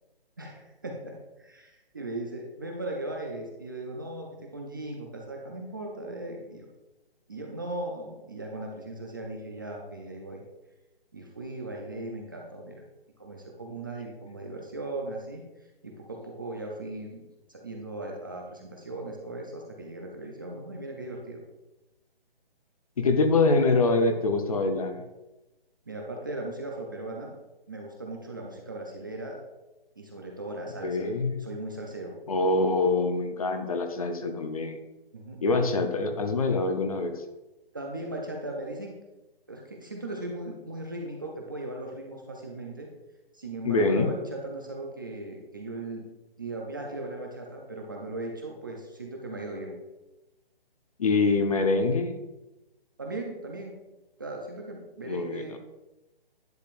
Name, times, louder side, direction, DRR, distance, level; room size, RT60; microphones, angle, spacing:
voice 1, 0.4-6.7 7.3-10.4 11.1-12.8 13.2-15.4 15.8-17.2 17.5-21.4 25.9-27.3 27.7-29.4 30.0-31.1 31.4-32.2 35.1-35.4 37.7-38.9 39.5-42.9 43.3-46.1 46.4-49.8 53.0-53.8 54.2-55.6, right 2 dB, 20° right, 0 dB, 0.5 m, -38 dB
voice 2, 23.0-25.0 30.8-31.4 32.3-34.8 35.4-37.2 43.6-44.1 51.0-52.1 55.1-55.6, left 3 dB, 40° left, 6 dB, 0.7 m, -25 dB
10.5 x 6.5 x 2.5 m, 1.0 s
hypercardioid pair, 165°, 30 cm